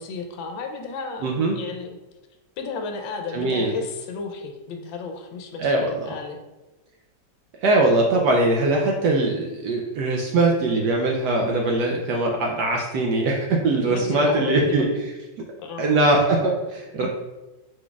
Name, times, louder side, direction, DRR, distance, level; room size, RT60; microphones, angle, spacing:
voice 1, 0.0-2.0 2.6-6.4 13.9-14.9 15.6-15.8 17.0-17.1, left 4 dB, 75° left, 4 dB, 1.3 m, -33 dB
voice 2, 1.2-1.6 3.3-3.7 5.6-5.9 7.6-15.1 15.8-17.1, right 2 dB, 75° right, 0 dB, 1.0 m, -21 dB
5.0 x 3.8 x 2.3 m, 1.1 s
omnidirectional pair, 2.2 m